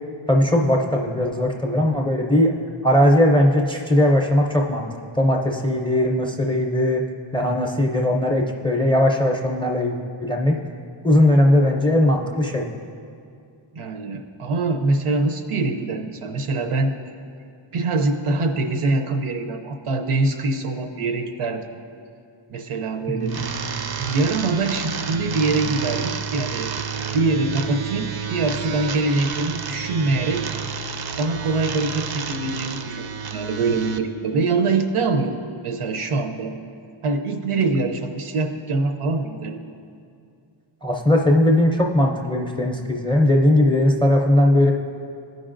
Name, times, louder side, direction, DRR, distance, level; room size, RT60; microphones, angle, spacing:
voice 1, 0.3-2.5 2.8-4.9 5.1-7.0 7.3-10.6 11.0-12.7 23.1-23.4 40.8-44.7, left 1 dB, 10° left, 1 dB, 0.4 m, -19 dB
voice 2, 13.7-16.9 17.7-21.7 22.5-23.3 24.0-26.7 27.1-30.5 31.2-33.1 33.3-36.5 37.0-39.6, right 3 dB, 85° right, 5 dB, 0.7 m, -24 dB
sound 1, 23.3-34.0, right 6 dB, 50° right, 0.4 m, -30 dB
15.0 x 5.3 x 2.5 m, 2.4 s
wide cardioid pair, 145°, 50 cm